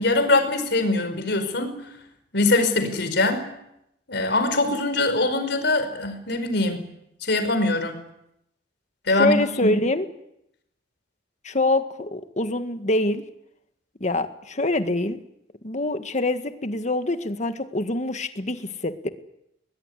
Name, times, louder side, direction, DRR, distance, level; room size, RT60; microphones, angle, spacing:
voice 1, 0.0-1.8 2.3-3.5 4.1-6.8 7.2-8.0 9.1-9.7, left 2 dB, 65° left, 8 dB, 5.1 m, -22 dB
voice 2, 9.1-10.1 11.4-13.2 14.0-15.2 15.6-19.1, left 2 dB, 40° left, 9 dB, 1.8 m, -25 dB
21.5 x 21.0 x 10.0 m, 0.81 s
head